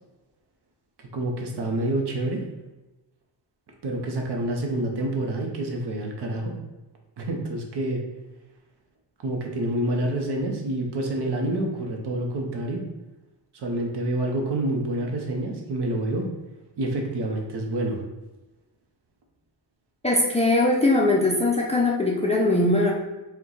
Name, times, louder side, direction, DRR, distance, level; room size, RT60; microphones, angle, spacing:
voice 1, 1.1-2.5 3.8-6.6 7.2-8.0 9.2-12.8 13.5-16.3 16.8-18.0, right 1 dB, 65° right, 1 dB, 0.8 m, -27 dB
voice 2, 20.0-22.9, left 2 dB, 15° left, -2 dB, 0.3 m, -21 dB
4.4 x 2.2 x 3.8 m, 1.1 s
wide cardioid pair, 150°, 44 cm